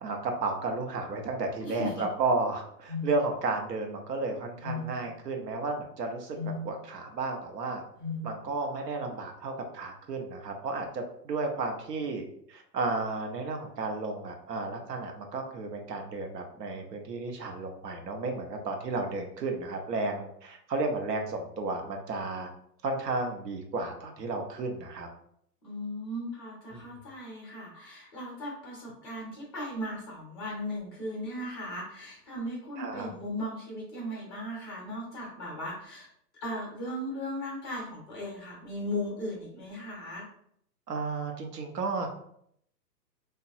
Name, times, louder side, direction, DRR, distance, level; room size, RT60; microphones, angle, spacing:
voice 1, 0.0-6.4 6.6-7.8 8.2-22.5 22.8-25.1 26.7-26.8 32.8-33.1 40.9-42.1, right 3 dB, 75° right, 4 dB, 0.9 m, -33 dB
voice 2, 1.6-2.1 25.6-36.1 36.4-40.3, left 1 dB, 15° left, -4 dB, 0.5 m, -37 dB
sound 1, 2.9-3.2 4.6-4.9 6.4-6.7 8.0-8.3, left 3 dB, 30° right, 0.6 m, -34 dB
2.9 x 2.3 x 2.6 m, 0.69 s
hypercardioid pair, 150°, 49 cm